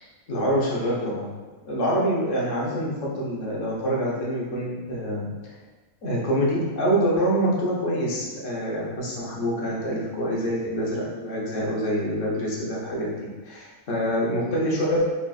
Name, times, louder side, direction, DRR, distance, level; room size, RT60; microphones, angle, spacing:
voice 1, 0.3-1.3 1.6-5.3 6.0-13.1 13.4-15.0, equal, 70° left, -5 dB, 1.3 m, -26 dB
4.0 x 3.6 x 2.4 m, 1.3 s
omnidirectional pair, 1.4 m